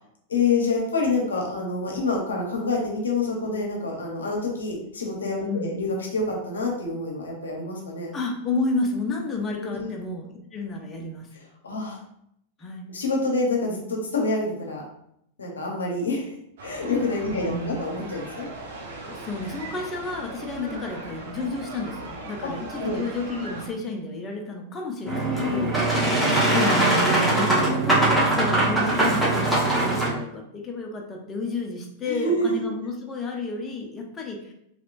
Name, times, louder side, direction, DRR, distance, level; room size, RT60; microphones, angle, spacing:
voice 1, 0.3-8.1 9.6-9.9 11.3-12.0 12.9-14.8 15.4-16.3 16.6-18.5 20.6-20.8 22.4-22.5 22.8-23.0 25.0-25.8 32.1-32.6, left 3 dB, 85° left, -1 dB, 0.8 m, -27 dB
voice 2, 5.4-5.7 8.1-11.3 12.6-12.9 17.3-17.8 19.0-34.5, left 2 dB, 25° left, 1 dB, 0.6 m, -31 dB
sound 1, 16.6-23.7, right 2 dB, 65° right, 0.8 m, -39 dB
Boat Water vehicle, 25.1-30.1, right 2 dB, ahead, 1.1 m, -21 dB
3.1 x 2.9 x 2.5 m, 0.74 s
hypercardioid pair, 100°, 0 cm